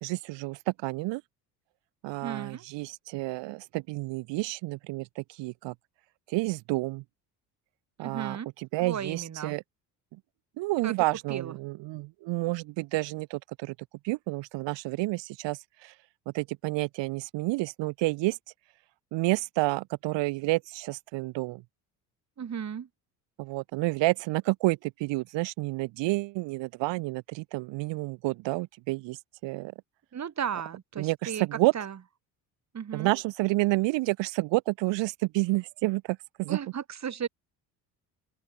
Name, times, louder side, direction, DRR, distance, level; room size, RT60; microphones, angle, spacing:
voice 1, 0.0-1.2 2.0-5.7 6.3-7.0 8.0-9.6 10.6-13.7 14.0-15.9 16.2-18.4 19.1-21.6 23.4-29.7 31.0-31.7 32.9-36.6, right 21 dB, 65° right, 1.7 m, -30 dB
voice 2, 2.2-2.6 8.0-8.5 8.8-9.6 10.8-10.9 11.3-11.5 22.4-22.9 30.1-31.4 31.7-31.9 32.7-33.1 36.5-37.3, right 8 dB, 35° right, 2.2 m, -35 dB
open air
hypercardioid pair, 60°, 48 cm